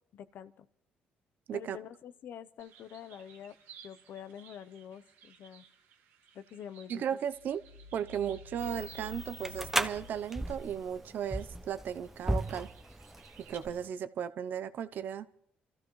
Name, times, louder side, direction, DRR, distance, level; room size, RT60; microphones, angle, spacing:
voice 1, 0.1-0.7 1.5-3.5 3.8-5.7 6.3-7.0, left 9 dB, 65° left, 0.7 m, -47 dB
sound 1, 2.6-13.6, right 8 dB, 85° right, 1.6 m, -58 dB
sound 2, 3.6-3.8 7.3-11.7 12.1-12.2, left 4 dB, 90° left, 2.8 m, -53 dB
voice 2, 6.9-7.6 7.9-12.7 13.5-15.3, right 9 dB, 60° right, 0.6 m, -35 dB
sound 3, 8.6-13.9, right 1 dB, 5° right, 0.8 m, -37 dB
27.5 x 14.0 x 3.2 m
cardioid pair, 100°, 4 cm